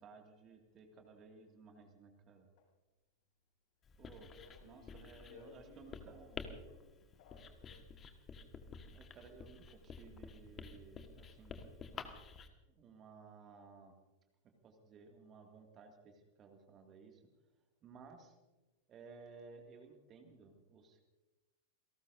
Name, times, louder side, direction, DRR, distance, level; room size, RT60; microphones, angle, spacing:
voice 1, 0.0-2.5 4.0-4.3 4.6-6.4 8.9-12.0 12.7-13.9 14.6-17.2 17.8-18.4 18.9-21.0, right 4 dB, 30° right, 3 dB, 2.2 m, -57 dB
Writing, 3.8-12.5, left 5 dB, 25° left, 1.5 m, -51 dB
voice 2, 4.1-6.1 6.7-7.9, left 5 dB, 50° left, -1 dB, 7.9 m, -60 dB
28.0 x 18.5 x 2.7 m, 1.1 s
figure-of-eight pair, 90°, 0 cm